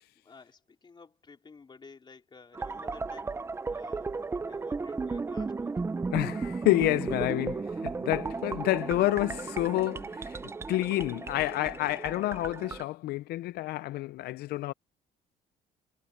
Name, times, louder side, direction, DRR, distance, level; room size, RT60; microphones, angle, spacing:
voice 1, 0.0-3.4 3.7-4.1 4.4-5.8, left 4 dB, 25° left, 3.1 m, -53 dB
sound 1, 2.5-12.8, right 4 dB, 15° right, 0.4 m, -35 dB
voice 2, 6.1-10.4 10.7-14.7, left 17 dB, 70° left, 0.4 m, -29 dB
cardioid pair, 110°, 17 cm